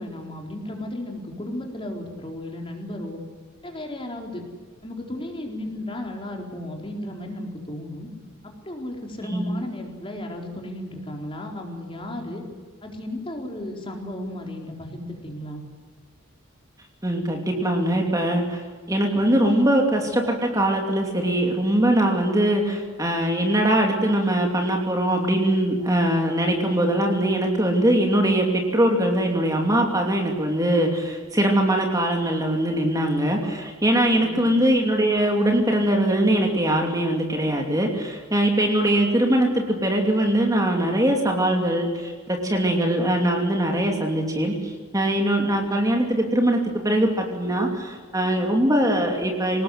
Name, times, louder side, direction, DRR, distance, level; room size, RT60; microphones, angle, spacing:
voice 1, 0.0-3.2 3.6-4.4 4.8-8.1 8.6-12.4 12.8-15.6 34.1-34.5, left 1 dB, 25° left, 2 dB, 4.2 m, -34 dB
voice 2, 9.2-9.5 17.0-18.6 18.9-49.6, right 1 dB, 15° right, 2 dB, 2.9 m, -22 dB
27.0 x 19.0 x 8.0 m, 1.5 s
head